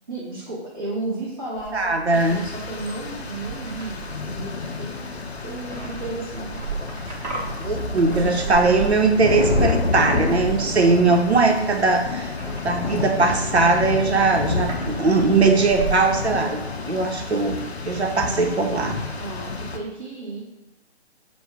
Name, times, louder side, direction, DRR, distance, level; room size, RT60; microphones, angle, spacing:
voice 1, 0.1-4.0 4.3-5.1 5.4-6.7 7.2-7.4 8.0-9.0 19.1-20.4, right 2 dB, 20° right, -10 dB, 0.6 m, -33 dB
sound 1, 1.5-16.1, right 5 dB, 40° right, 0.9 m, -35 dB
voice 2, 1.7-2.4 7.6-12.3 12.6-16.6 16.9-17.6 17.9-19.0, right 3 dB, 75° right, 4 dB, 0.7 m, -20 dB
Rain, 2.1-19.8, left 4 dB, 70° left, 0.6 m, -29 dB
5.0 x 2.1 x 3.5 m, 0.95 s
figure-of-eight pair, 145°, 33 cm